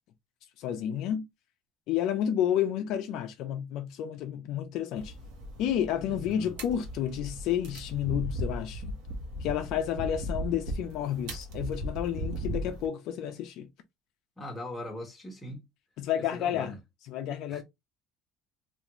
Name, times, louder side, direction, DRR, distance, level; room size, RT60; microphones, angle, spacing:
voice 1, 0.6-1.2 1.9-5.1 5.6-9.0 9.4-13.7 16.0-16.7 17.1-17.6, left 10 dB, 55° left, 0.5 m, -31 dB
sound 1, 5.0-12.9, equal, 75° right, 1.0 m, -37 dB
voice 2, 6.1-6.5 14.4-15.6 16.3-16.8 17.5-17.6, left 1 dB, 5° left, 1.0 m, -40 dB
3.5 x 2.4 x 2.9 m
cardioid pair, 170°, 0 cm